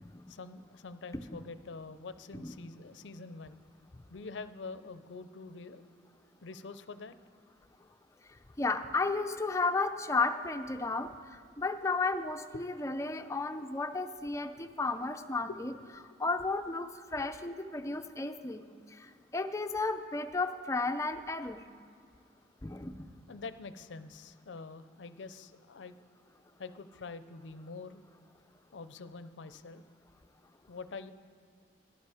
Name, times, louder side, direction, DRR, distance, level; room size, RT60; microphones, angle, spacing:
voice 1, 0.3-3.6 4.1-5.8 6.4-7.1 12.7-12.9 15.5-15.8 23.3-25.9 26.6-28.0 28.7-29.8 30.7-31.1, left 4 dB, 90° left, 12 dB, 0.6 m, -45 dB
voice 2, 8.6-11.1 11.6-15.7 16.2-18.6 19.0-21.6 22.6-23.1, left 3 dB, 15° left, 8 dB, 0.5 m, -33 dB
11.5 x 11.5 x 4.9 m, 2.3 s
head